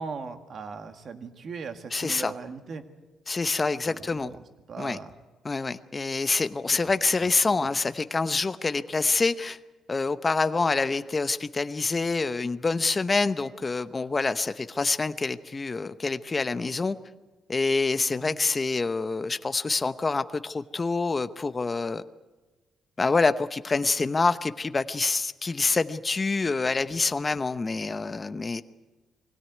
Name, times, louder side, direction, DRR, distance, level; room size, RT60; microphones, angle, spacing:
voice 1, 0.0-2.8 3.8-4.4 4.7-5.1 7.2-7.8 18.2-18.4, right 5 dB, 55° right, 7 dB, 1.9 m, -39 dB
voice 2, 1.9-2.3 3.3-4.3 4.8-5.0 5.4-9.6 9.9-17.0 17.5-22.0 23.0-28.6, left 3 dB, 30° left, 12 dB, 0.9 m, -26 dB
21.5 x 17.0 x 9.5 m, 1.2 s
cardioid pair, 90°, 0 cm